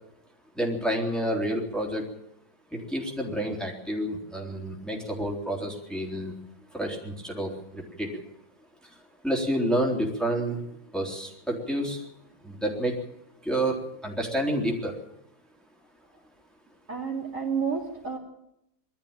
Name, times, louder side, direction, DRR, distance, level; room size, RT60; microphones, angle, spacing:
voice 1, 0.6-2.0 2.7-6.3 6.7-8.1 9.2-10.6 10.9-12.0 12.4-12.9 13.5-13.8 14.0-14.9, right 1 dB, ahead, -1 dB, 3.7 m, -29 dB
voice 2, 16.9-18.2, right 6 dB, 45° right, -1 dB, 3.4 m, -30 dB
22.0 x 13.5 x 9.0 m, 0.83 s
omnidirectional pair, 2.0 m